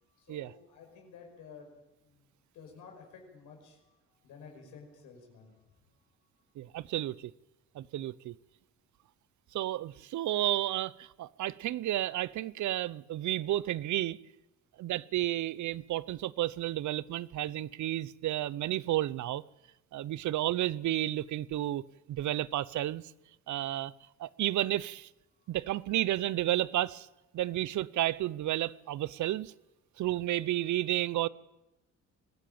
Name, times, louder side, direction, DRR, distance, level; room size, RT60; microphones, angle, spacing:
voice 1, 0.2-1.7 2.0-5.6 25.3-25.6 30.0-30.1, left 5 dB, 85° left, 5.4 m, -53 dB
voice 2, 6.6-7.3 7.7-8.3 9.5-14.2 14.8-19.4 19.9-21.8 22.1-23.0 23.5-23.9 24.2-25.1 25.5-27.1 27.3-29.5 30.0-31.3, right 14 dB, 75° right, 0.8 m, -32 dB
22.5 x 14.5 x 8.8 m
cardioid pair, 90°, 30 cm